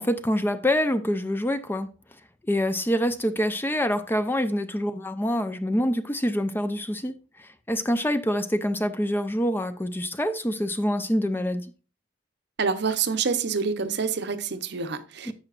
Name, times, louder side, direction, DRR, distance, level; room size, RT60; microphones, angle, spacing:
voice 1, 0.0-1.9 2.5-11.7 15.3-15.4, equal, 10° left, 0.5 m, -26 dB
voice 2, 12.6-15.3, right 5 dB, 65° right, 0.8 m, -27 dB
10.5 x 7.8 x 2.4 m
head